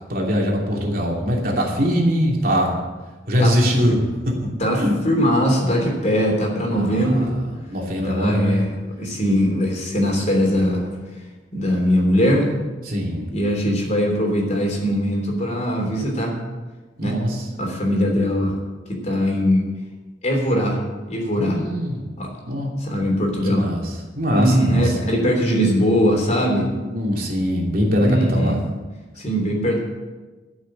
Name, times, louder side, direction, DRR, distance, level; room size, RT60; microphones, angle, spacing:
voice 1, 0.1-2.8 3.3-4.0 4.8-4.9 6.7-7.1 7.7-8.6 12.9-13.3 17.0-17.3 21.4-22.0 22.5-22.7 23.5-23.8 24.1-24.9 26.5-26.6 26.9-28.6, equal, 50° right, -1 dB, 2.8 m, -21 dB
voice 2, 4.6-7.3 8.0-11.0 11.5-12.5 13.3-16.3 17.0-17.2 17.6-18.6 19.0-19.6 20.2-20.8 21.1-21.6 22.2-22.3 22.8-23.7 24.3-26.7 28.0-28.6 29.2-29.8, equal, 40° left, 0 dB, 3.1 m, -21 dB
13.0 x 6.4 x 8.8 m, 1.2 s
head